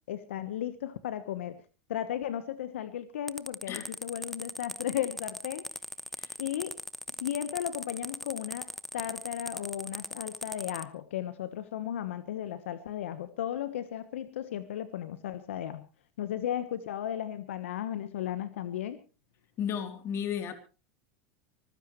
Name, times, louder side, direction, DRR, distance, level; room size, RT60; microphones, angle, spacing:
voice 1, 0.1-1.6 1.9-5.6 6.4-6.7 7.2-15.9 16.2-19.0, left 10 dB, 85° left, 1.2 m, -35 dB
sound 1, 3.3-10.8, left 1 dB, ahead, 0.9 m, -39 dB
voice 2, 19.6-20.5, left 8 dB, 40° left, 3.3 m, -34 dB
24.5 x 15.5 x 3.2 m
hypercardioid pair, 105°, 7 cm